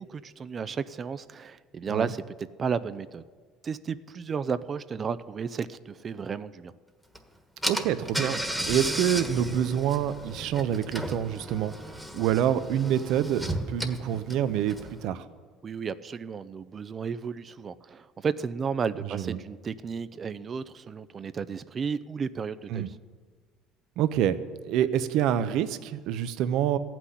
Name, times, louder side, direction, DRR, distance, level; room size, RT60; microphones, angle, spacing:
voice 1, 0.1-3.2 3.6-6.7 15.6-23.0, right 6 dB, 35° right, 14 dB, 0.5 m, -33 dB
Car / Engine, 7.1-7.2 7.6-15.1, right 1 dB, ahead, 1.4 m, -34 dB
voice 2, 7.7-11.7 12.1-15.2 19.1-19.4 22.7-22.9 24.0-24.4 24.6-26.8, right 10 dB, 70° right, 12 dB, 0.8 m, -27 dB
14.5 x 6.1 x 9.9 m, 1.5 s
supercardioid pair, 95°, 0 cm